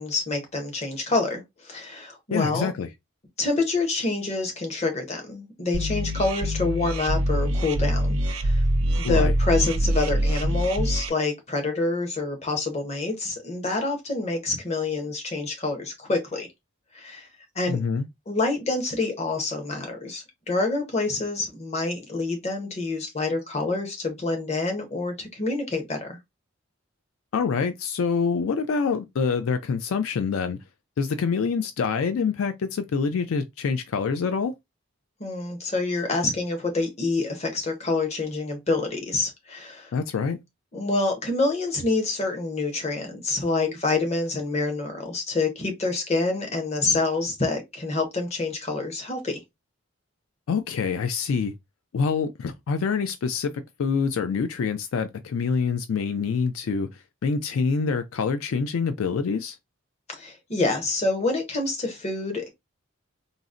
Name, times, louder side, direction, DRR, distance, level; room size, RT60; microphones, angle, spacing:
voice 1, 0.0-2.7 3.4-8.6 9.0-16.5 16.9-17.3 17.5-17.8 18.3-26.2 35.2-39.9 40.7-49.4 60.1-62.5, left 3 dB, 30° left, 0.7 m, -27 dB
voice 2, 2.3-2.9 9.0-9.3 17.7-18.1 27.3-30.6 31.0-34.5 39.9-40.4 50.5-51.5 51.9-53.5 53.8-59.6, left 5 dB, 75° left, 0.3 m, -26 dB
sound 1, 5.7-11.1, right 1 dB, 70° right, 0.5 m, -24 dB
3.8 x 2.0 x 2.4 m
head